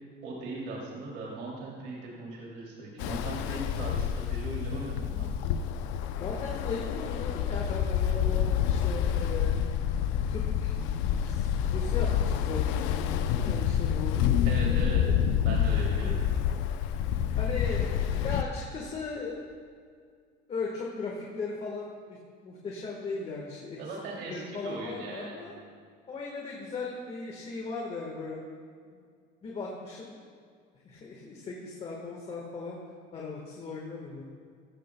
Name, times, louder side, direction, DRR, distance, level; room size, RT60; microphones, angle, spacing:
voice 1, 0.2-5.3 14.4-15.1 15.4-16.2 23.8-25.4, right 2 dB, 65° right, -3 dB, 2.8 m, -39 dB
Ocean, 3.0-18.4, left 9 dB, 80° left, 0.6 m, -28 dB
voice 2, 6.2-9.6 10.3-14.6 15.1-15.4 15.9-16.1 17.4-19.5 20.5-22.2 22.4-23.8 24.3-25.5 26.1-28.4 28.9-29.0 29.4-30.2 30.8-32.8 33.1-34.2, left 4 dB, 30° left, -2 dB, 1.5 m, -38 dB
14.5 x 14.0 x 2.3 m, 2.1 s
cardioid pair, 140°, 20 cm